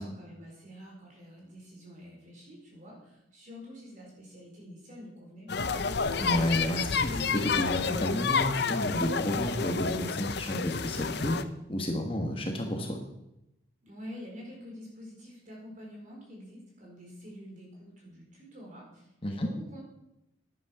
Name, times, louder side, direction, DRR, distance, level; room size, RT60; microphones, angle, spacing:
voice 1, 0.0-5.7 13.8-19.8, equal, 40° right, -2 dB, 4.7 m, -47 dB
sound 1, 5.5-11.4, left 5 dB, 55° left, 0.7 m, -30 dB
voice 2, 6.2-11.4 11.7-13.0 19.2-19.5, equal, 30° left, 2 dB, 1.4 m, -31 dB
11.0 x 9.5 x 6.1 m, 0.86 s
head